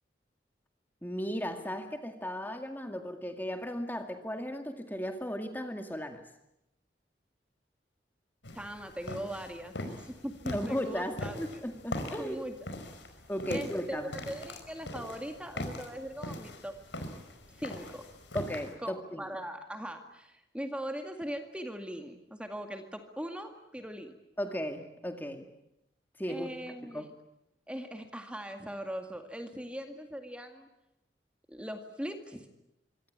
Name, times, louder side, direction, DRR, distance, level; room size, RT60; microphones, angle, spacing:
voice 1, 1.0-6.3 10.5-12.4 13.3-14.2 18.3-19.3 24.4-25.5 26.2-26.5 26.8-27.1, equal, 10° left, 6 dB, 2.0 m, -36 dB
sound 1, 8.4-18.7, left 1 dB, 80° left, 5.1 m, -42 dB
voice 2, 8.5-11.4 12.0-12.6 13.5-16.8 17.6-18.1 18.8-24.2 26.3-27.1 27.7-30.7 31.5-32.5, equal, 5° right, 5 dB, 2.0 m, -40 dB
25.5 x 25.0 x 8.7 m, 0.88 s
head